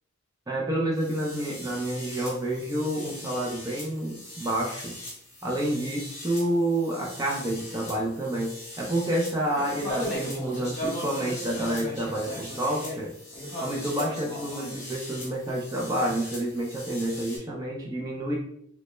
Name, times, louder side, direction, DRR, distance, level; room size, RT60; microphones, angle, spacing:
voice 1, 0.5-4.9 5.4-13.1 13.6-18.4, right 1 dB, 15° right, -2 dB, 0.3 m, -29 dB
sound 1, 1.0-17.4, equal, 30° left, 0.9 m, -38 dB
2.1 x 2.0 x 2.9 m, 0.71 s
head